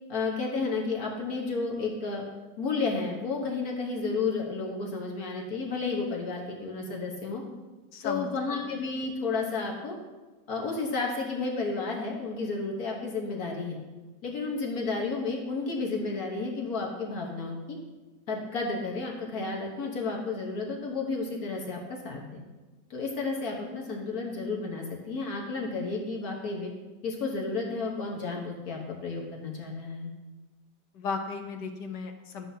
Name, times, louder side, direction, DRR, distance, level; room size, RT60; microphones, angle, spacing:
voice 1, 0.1-2.2 2.6-7.4 8.0-9.9 10.5-13.8 14.2-17.8 18.3-22.4 22.9-26.7 27.0-30.1, left 4 dB, 60° left, -1 dB, 1.5 m, -32 dB
voice 2, 7.9-8.3 30.9-32.5, left 5 dB, 75° left, 5 dB, 1.5 m, -35 dB
13.0 x 7.5 x 2.8 m, 1.2 s
omnidirectional pair, 1.9 m